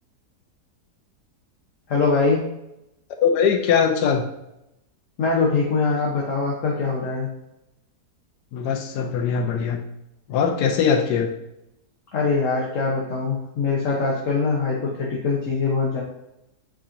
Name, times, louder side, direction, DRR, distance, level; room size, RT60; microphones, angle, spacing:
voice 1, 1.9-2.4 5.2-7.3 12.1-16.0, left 4 dB, 55° left, -2 dB, 1.1 m, -23 dB
voice 2, 3.2-4.2 8.5-9.8 10.3-11.3, left 6 dB, 80° left, 4 dB, 1.2 m, -21 dB
4.9 x 4.2 x 2.5 m, 0.87 s
omnidirectional pair, 1.8 m